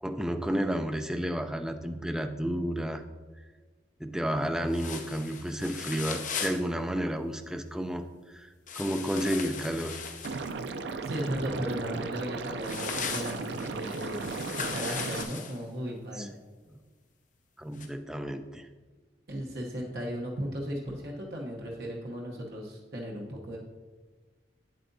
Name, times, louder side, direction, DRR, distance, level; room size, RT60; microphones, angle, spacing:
voice 1, 0.0-3.0 4.0-10.0 16.1-16.3 17.6-18.7, equal, 5° right, 6 dB, 0.3 m, -31 dB
sound 1, 4.7-6.6 8.7-10.5 12.6-15.6 17.8-17.9, left 6 dB, 45° left, 0.6 m, -38 dB
Liquid, 10.2-15.2, right 4 dB, 75° right, 0.4 m, -36 dB
voice 2, 11.0-16.3 19.3-23.6, equal, 60° right, -2 dB, 0.9 m, -36 dB
8.2 x 7.6 x 2.7 m, 1.4 s
head